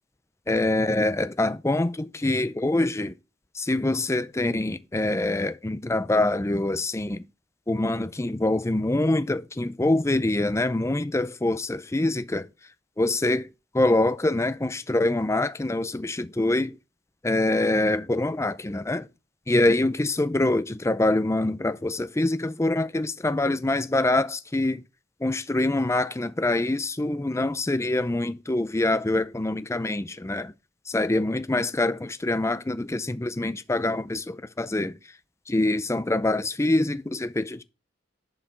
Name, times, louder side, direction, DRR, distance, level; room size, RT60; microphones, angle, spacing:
voice 1, 0.5-3.1 3.5-7.2 7.7-12.5 13.0-13.5 13.7-16.8 17.2-19.1 19.5-24.8 25.2-30.5 30.9-35.0 35.5-37.6, left 2 dB, 15° left, 0.5 m, -25 dB
11.0 x 4.8 x 6.9 m
head